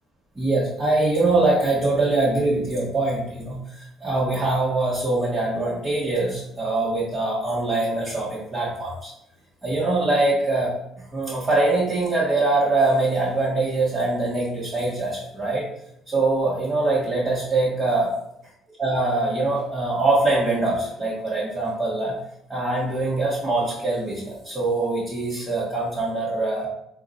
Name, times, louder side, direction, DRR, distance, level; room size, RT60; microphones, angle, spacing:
voice 1, 0.3-3.6 4.0-9.1 9.6-10.7 11.1-15.7 16.1-18.1 18.8-22.2 22.5-26.7, right 2 dB, 25° right, -8 dB, 1.5 m, -23 dB
3.6 x 2.5 x 4.1 m, 0.78 s
supercardioid pair, 80°, 0 cm